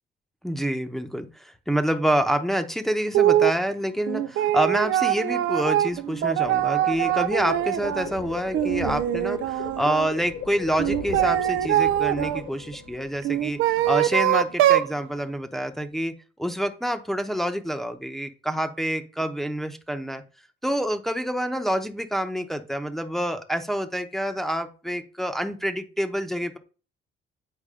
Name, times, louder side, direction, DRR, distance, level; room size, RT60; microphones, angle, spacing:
voice 1, 0.4-16.1 16.4-20.2 20.6-26.6, equal, ahead, 6 dB, 0.9 m, -27 dB
sound 1, 3.1-3.6 4.1-8.1 8.5-10.1 10.8-12.4 13.2-14.9, right 12 dB, 80° right, 0.5 m, -23 dB
Thunder, 5.4-14.8 15.1-15.3 15.7-15.8 15.9-16.0, left 4 dB, 85° left, 2.7 m, -43 dB
sound 2, 6.6-13.0, left 7 dB, 60° left, 1.1 m, -39 dB
8.4 x 4.7 x 3.7 m, 0.35 s
cardioid pair, 90°, 20 cm